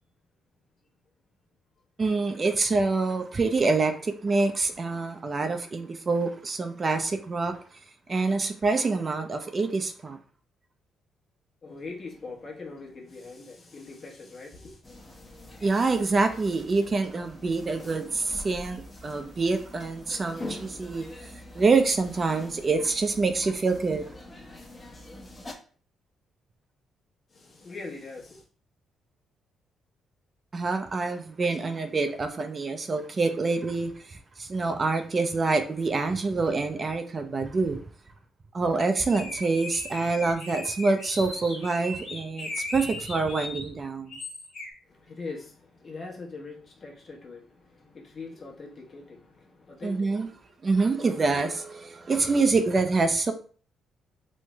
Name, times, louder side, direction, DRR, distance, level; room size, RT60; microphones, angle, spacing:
voice 1, 2.0-7.8 8.1-10.2 15.6-24.0 30.5-37.8 38.5-44.2 49.8-50.3 50.6-53.3, right 3 dB, 35° right, 0.4 m, -26 dB
voice 2, 11.6-14.8 27.3-28.4 44.8-50.3 51.0-51.1, left 3 dB, 45° left, 0.9 m, -42 dB
sound 1, 14.8-25.5, left 1 dB, 25° left, 0.6 m, -44 dB
sound 2, 39.1-43.7 44.1-44.7, left 2 dB, 65° left, 1.1 m, -38 dB
3.1 x 2.1 x 3.3 m
cardioid pair, 90°, 0 cm